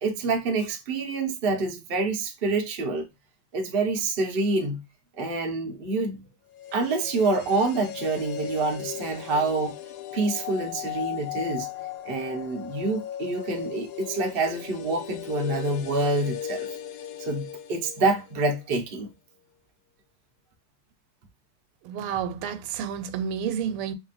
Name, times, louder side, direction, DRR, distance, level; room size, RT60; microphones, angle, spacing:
voice 1, 0.0-3.1 3.5-4.8 5.1-6.2 6.7-9.8 10.1-11.7 12.1-16.7 17.2-19.1, right 3 dB, 65° right, 0.5 m, -27 dB
sound 1, 6.5-18.6 18.9-19.0, left 11 dB, 85° left, 0.8 m, -37 dB
voice 2, 21.8-23.9, right 8 dB, 85° right, 1.5 m, -30 dB
3.4 x 2.6 x 4.1 m
omnidirectional pair, 2.4 m